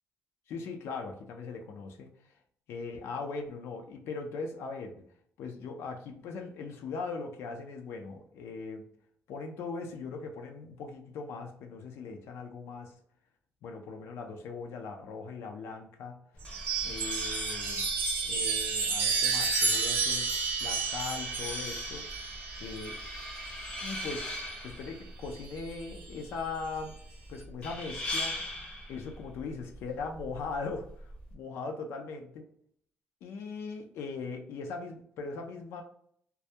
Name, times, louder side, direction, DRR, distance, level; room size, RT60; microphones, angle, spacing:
voice 1, 0.5-2.1 2.7-4.9 5.4-8.8 9.3-12.9 13.6-16.2 16.8-20.3 20.6-22.1 22.6-23.0 23.8-24.3 24.6-27.0 27.3-28.3 28.9-32.4 33.2-35.8, left 4 dB, 75° left, 4 dB, 0.4 m, -39 dB
sound 1, 16.3-31.3, left 1 dB, 25° left, 0.6 m, -41 dB
Chime, 16.4-24.2 25.5-26.1, right 4 dB, 55° right, 0.7 m, -31 dB
2.2 x 2.1 x 2.7 m, 0.64 s
cardioid pair, 165°, 4 cm